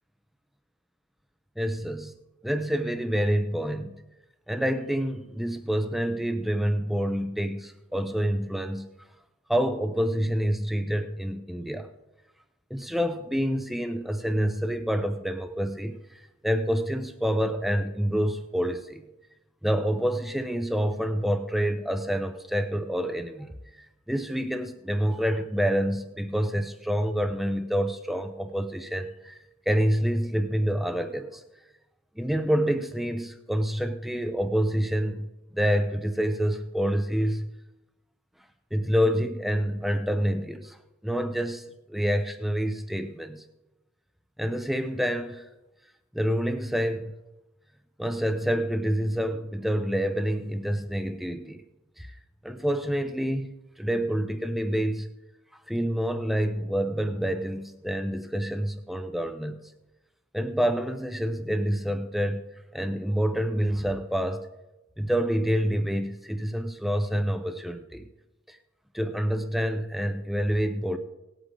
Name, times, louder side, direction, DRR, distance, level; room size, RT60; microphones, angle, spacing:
voice 1, 1.6-2.1 2.4-4.0 4.5-8.9 9.5-11.9 12.7-19.0 19.6-29.4 29.7-31.4 32.2-37.5 38.7-40.8 41.0-43.4 44.4-45.5 46.1-47.1 48.0-51.6 52.0-52.1 52.4-55.1 55.7-59.6 60.3-62.4 62.7-64.5 65.0-68.1 68.5-68.6 68.9-71.0, equal, ahead, 8 dB, 0.6 m, -27 dB
18.5 x 8.1 x 3.8 m, 1.0 s
head